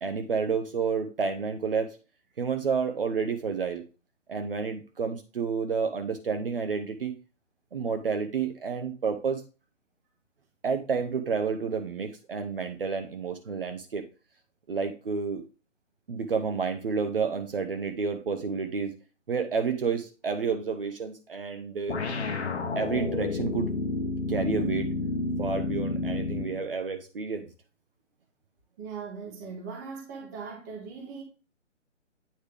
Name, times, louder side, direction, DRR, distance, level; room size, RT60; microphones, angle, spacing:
voice 1, 0.0-2.0 2.4-3.8 4.3-7.1 7.7-9.4 10.6-14.1 14.7-15.4 16.1-19.0 19.3-22.0 22.8-23.7 24.3-24.9 25.4-27.5, right 5 dB, 45° right, 0.8 m, -30 dB
sound 1, 21.9-26.6, left 3 dB, 60° left, 1.0 m, -30 dB
voice 2, 28.8-31.2, right 5 dB, 15° right, 1.0 m, -39 dB
8.7 x 3.3 x 3.4 m
figure-of-eight pair, 140°, 38 cm